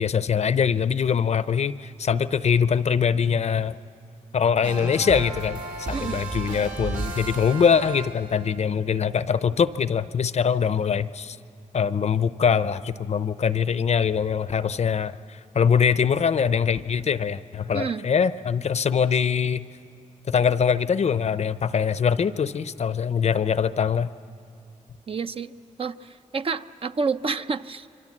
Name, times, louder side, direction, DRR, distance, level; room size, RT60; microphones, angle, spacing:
voice 1, 0.0-3.8 4.3-5.6 5.9-11.4 11.7-19.7 20.3-24.1, left 7 dB, 55° left, 14 dB, 0.6 m, -23 dB
sound 1, 4.6-8.5, right 3 dB, 85° right, 4.4 m, -33 dB
voice 2, 5.9-6.2 17.7-18.0 25.1-25.5 25.8-27.9, right 5 dB, 45° right, 10 dB, 0.6 m, -29 dB
27.0 x 24.5 x 7.4 m, 2.7 s
wide cardioid pair, 100°, 14 cm